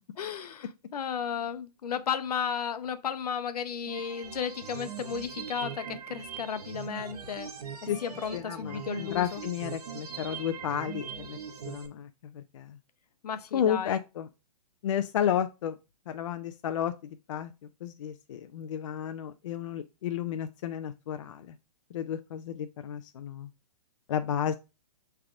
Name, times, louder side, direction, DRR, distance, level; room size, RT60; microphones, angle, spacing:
voice 1, 0.2-7.5 7.8-9.4 13.2-14.0, left 7 dB, 80° left, 0.7 m, -34 dB
sound 1, 3.9-11.9, right 7 dB, 80° right, 1.0 m, -41 dB
voice 2, 8.3-11.4 11.6-12.8 13.5-14.3 14.8-15.8 16.1-17.5 17.8-21.5 21.9-23.5 24.1-24.5, left 9 dB, 55° left, 0.4 m, -32 dB
6.0 x 3.3 x 2.5 m
hypercardioid pair, 160°, 20 cm